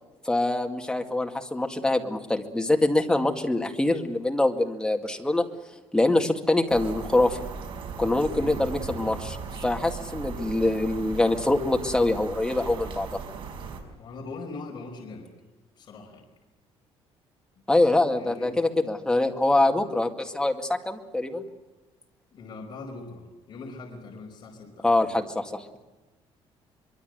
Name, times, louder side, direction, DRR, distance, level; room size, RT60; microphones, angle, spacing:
voice 1, 0.2-5.5 5.9-7.4 8.0-9.4 9.6-13.2 17.7-21.4 24.8-25.8, left 2 dB, 5° left, 3 dB, 2.2 m, -24 dB
sound 1, 6.7-13.8, right 5 dB, 55° right, 5.3 m, -37 dB
voice 2, 8.3-8.6 14.0-15.3 15.8-16.2 17.6-17.7 18.1-18.6 22.3-25.2, left 3 dB, 45° left, 0 dB, 5.2 m, -41 dB
24.5 x 23.5 x 8.0 m, 1.1 s
cardioid pair, 155°, 10 cm